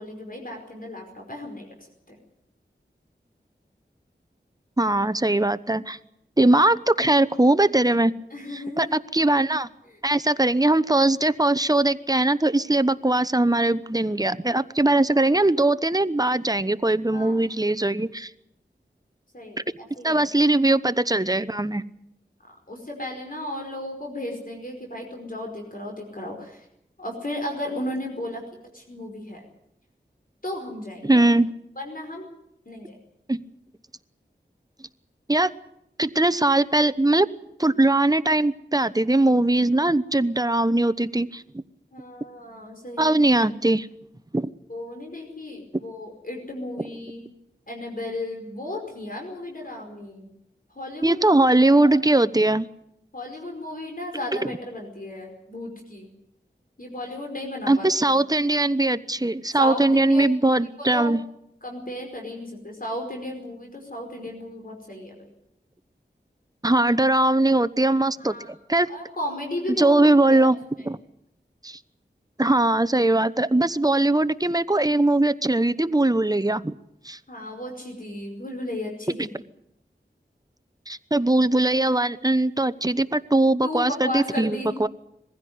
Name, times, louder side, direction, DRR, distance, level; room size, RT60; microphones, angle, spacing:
voice 1, 0.0-2.2 8.3-8.9 9.8-10.0 17.1-17.4 19.3-20.2 22.4-26.7 27.0-28.4 28.7-29.4 30.4-31.2 31.7-32.2 32.6-33.0 41.9-43.2 44.7-47.2 47.7-50.3 50.7-51.2 51.8-52.0 53.1-56.1 56.8-58.2 59.5-60.5 60.9-61.1 61.6-65.3 68.2-68.5 68.8-70.5 70.8-70.9 77.3-79.4 83.6-84.7, left 1 dB, 50° left, 1 dB, 5.1 m, -35 dB
voice 2, 4.8-6.0 6.4-8.1 8.8-9.7 10.0-18.3 20.0-21.8 31.0-31.5 33.3-33.4 35.3-35.5 36.0-37.3 37.6-41.4 43.0-43.9 44.3-44.5 51.0-52.7 57.7-61.2 66.6-68.3 68.7-68.9 69.8-70.6 70.9-71.0 71.6-71.8 72.4-76.7 77.0-77.2 80.9-84.9, right 2 dB, 20° right, 13 dB, 0.9 m, -20 dB
22.0 x 15.5 x 9.6 m, 0.79 s
wide cardioid pair, 50°, 19 cm